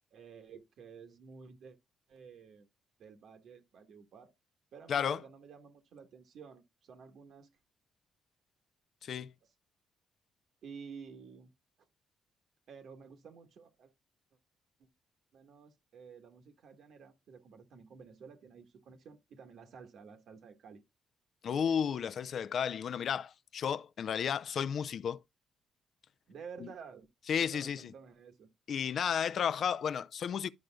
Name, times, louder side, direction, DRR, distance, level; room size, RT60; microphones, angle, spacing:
voice 1, 0.1-1.8 2.1-2.7 3.0-4.3 4.7-7.5 10.6-11.5 12.7-13.9 14.8-14.9 15.3-20.8 26.3-27.1 27.4-28.5, right 6 dB, 70° right, 1.2 m, -52 dB
voice 2, 9.0-9.3 21.4-25.2 27.3-27.8 28.7-30.5, left 8 dB, 60° left, 0.4 m, -33 dB
12.0 x 5.0 x 2.2 m
cardioid pair, 90°, 0 cm